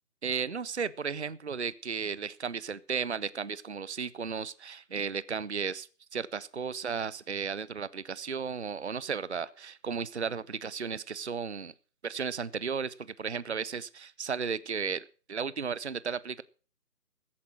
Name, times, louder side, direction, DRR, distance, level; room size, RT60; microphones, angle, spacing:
voice 1, 0.2-11.7 12.0-16.4, right 6 dB, 45° right, 0.6 m, -34 dB
15.0 x 8.6 x 6.2 m
figure-of-eight pair, 160°, 48 cm